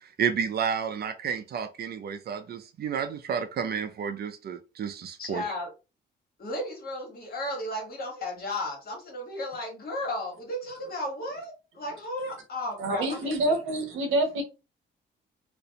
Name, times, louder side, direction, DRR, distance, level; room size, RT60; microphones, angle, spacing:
voice 1, 0.0-5.4, right 7 dB, 55° right, 0.5 m, -31 dB
voice 2, 5.2-5.7 6.4-13.6, left 1 dB, 50° left, 1.3 m, -34 dB
voice 3, 12.8-14.4, right 1 dB, 85° right, 0.8 m, -26 dB
2.4 x 2.1 x 2.7 m
cardioid pair, 90°, 20 cm